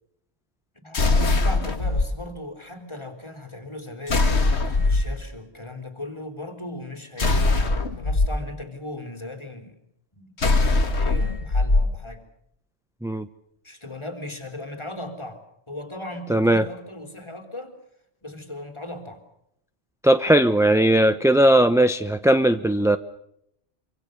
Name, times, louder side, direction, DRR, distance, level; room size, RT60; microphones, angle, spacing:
voice 1, 0.7-9.8 10.1-12.2 13.6-15.4 15.7-17.7 18.2-19.2, left 1 dB, 25° left, 6 dB, 3.7 m, -38 dB
sound 1, 0.9-2.1 4.1-5.1 7.2-8.3 10.4-11.9, left 3 dB, 70° left, 2.1 m, -21 dB
voice 2, 16.3-16.7 20.0-23.0, right 1 dB, 5° right, 10 dB, 0.7 m, -18 dB
26.0 x 25.5 x 6.7 m, 0.75 s
omnidirectional pair, 1.2 m